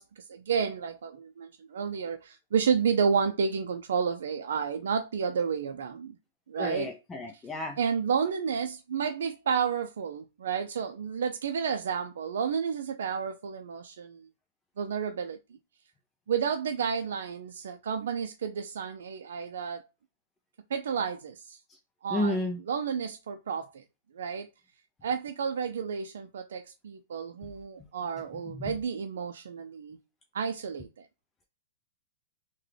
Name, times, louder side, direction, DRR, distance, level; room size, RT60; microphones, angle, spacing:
voice 1, 0.0-6.2 6.5-6.9 7.3-7.4 7.8-14.3 14.8-15.4 16.3-19.9 20.7-21.6 22.0-23.8 24.1-24.5 25.0-30.0 30.3-31.1, right 6 dB, 80° right, 0.4 m, -31 dB
voice 2, 6.6-7.8 22.1-22.6 28.6-28.7, left 1 dB, 15° left, 0.4 m, -31 dB
3.7 x 2.1 x 3.2 m
hypercardioid pair, 150°, 0 cm